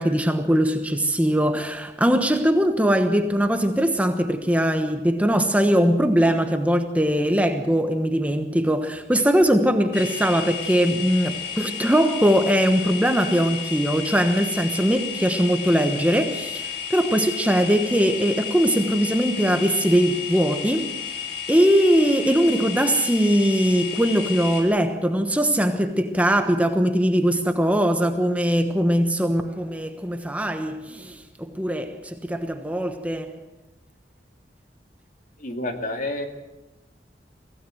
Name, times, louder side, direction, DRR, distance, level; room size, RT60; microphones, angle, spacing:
voice 1, 0.0-21.0 21.5-33.4, equal, 10° right, 1.1 m, -21 dB
sound 1, 9.9-24.6, left 8 dB, 65° left, 5.1 m, -32 dB
voice 2, 35.4-36.3, left 1 dB, 50° left, 2.4 m, -29 dB
23.5 x 16.5 x 7.7 m
head